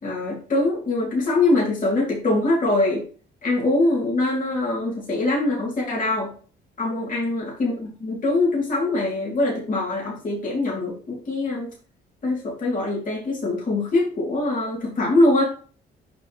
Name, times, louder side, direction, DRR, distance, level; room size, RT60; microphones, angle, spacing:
voice 1, 0.0-3.0 3.4-6.3 6.8-11.7 12.2-15.5, left 2 dB, 40° left, -3 dB, 2.7 m, -23 dB
6.9 x 5.5 x 3.1 m, 0.42 s
cardioid pair, 90°, 20 cm